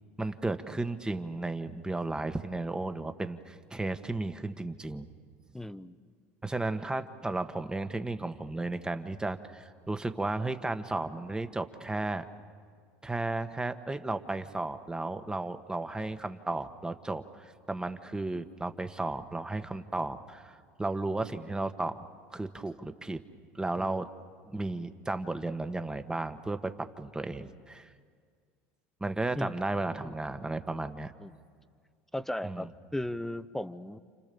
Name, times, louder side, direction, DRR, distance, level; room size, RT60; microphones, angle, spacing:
voice 1, 0.2-5.1 6.4-12.2 13.0-22.0 22.3-23.2 23.5-24.1 24.5-27.9 29.0-31.1 32.4-32.7, right 2 dB, 10° right, 9 dB, 1.5 m, -34 dB
voice 2, 5.5-6.0 23.8-24.0 27.4-27.5 29.3-29.6 31.2-31.3 32.1-34.0, left 1 dB, 5° left, 14 dB, 0.9 m, -36 dB
30.0 x 28.0 x 7.0 m, 2.1 s
hypercardioid pair, 80°, 7 cm